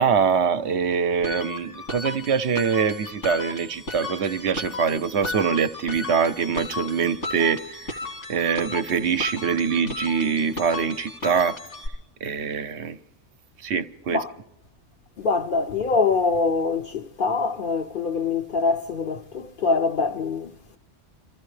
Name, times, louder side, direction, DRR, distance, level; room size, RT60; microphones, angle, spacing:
voice 1, 0.0-8.0 8.3-11.6 12.2-13.0 13.6-14.2, right 6 dB, 65° right, 0.9 m, -24 dB
sound 1, 1.2-11.9, left 3 dB, 85° left, 3.2 m, -35 dB
voice 2, 15.2-20.5, left 4 dB, 55° left, 0.7 m, -24 dB
27.5 x 15.0 x 3.2 m
omnidirectional pair, 1.3 m